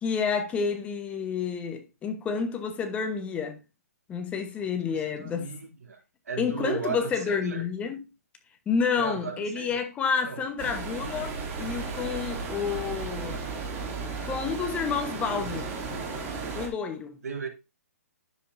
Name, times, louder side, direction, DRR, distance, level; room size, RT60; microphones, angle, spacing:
voice 1, 0.0-3.6 4.1-5.5 6.4-8.0 8.7-13.5 14.2-15.6 16.5-17.2, left 6 dB, 15° left, 1.0 m, -29 dB
voice 2, 4.8-6.0 6.3-7.6 9.0-9.8 10.2-10.4 15.3-15.6 17.2-17.5, right 5 dB, 75° right, 2.8 m, -36 dB
sound 1, 10.6-16.7, right 4 dB, 25° right, 2.6 m, -34 dB
10.0 x 7.2 x 2.6 m
hypercardioid pair, 150°, 9 cm